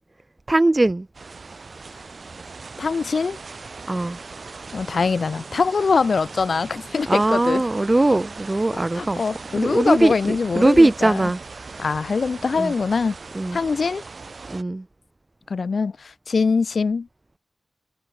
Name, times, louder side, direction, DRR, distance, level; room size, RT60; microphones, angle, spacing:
voice 1, 0.5-1.1 3.9-4.2 7.1-9.2 9.5-11.8 12.6-12.7 13.3-13.6 14.5-14.8, right 2 dB, 25° right, 1.1 m, -20 dB
sound 1, 1.1-14.6, right 4 dB, 55° right, 4.1 m, -39 dB
voice 2, 2.8-3.4 4.7-7.6 8.9-11.3 11.8-13.2 13.5-14.0 15.5-17.1, left 4 dB, 65° left, 3.1 m, -23 dB
wide cardioid pair, 110°, 0 cm